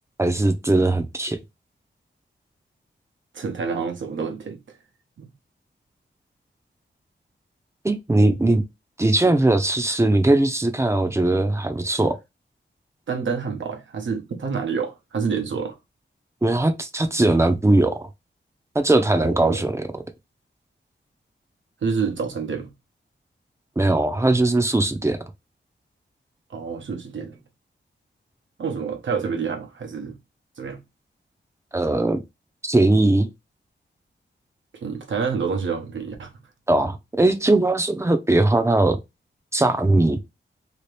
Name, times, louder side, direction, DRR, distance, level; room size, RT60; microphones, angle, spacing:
voice 1, 0.2-1.4 7.8-8.6 9.0-12.2 16.4-18.1 18.8-19.9 23.8-25.2 31.7-32.2 32.6-33.3 36.7-39.0 39.5-40.2, right 2 dB, 15° right, 0.5 m, -20 dB
voice 2, 3.3-4.8 5.2-5.3 13.1-15.8 19.1-19.6 21.8-22.7 26.5-27.4 28.6-30.2 30.6-30.8 34.7-36.3, right 5 dB, 85° right, 0.9 m, -28 dB
2.9 x 2.9 x 3.2 m
wide cardioid pair, 140°, 19 cm